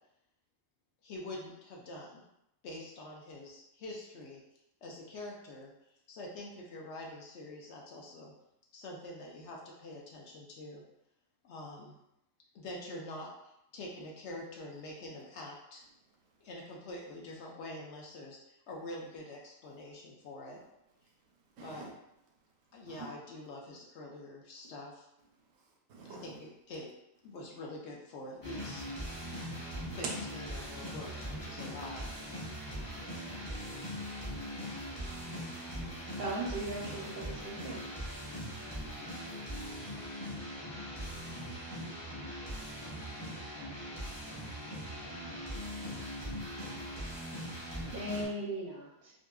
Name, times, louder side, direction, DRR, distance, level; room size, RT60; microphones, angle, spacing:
voice 1, 1.0-2.2 2.6-4.4 4.8-8.3 8.7-10.8 11.4-11.9 12.5-15.8 16.4-18.4 18.7-20.6 21.6-21.9 22.7-25.1 26.0-26.9 27.2-28.8 29.9-32.1, left 1 dB, 65° left, -2 dB, 0.8 m, -45 dB
voice 2, 21.6-21.9 22.9-23.1 25.4-26.4 29.9-30.2 32.8-33.2, right 4 dB, 90° right, 0 dB, 1.0 m, -45 dB
sound 1, 28.4-48.3, equal, 20° left, 0.6 m, -41 dB
voice 3, 36.1-37.8 47.9-49.1, right 1 dB, 65° right, -3 dB, 0.6 m, -38 dB
2.7 x 2.5 x 2.2 m, 0.83 s
omnidirectional pair, 1.4 m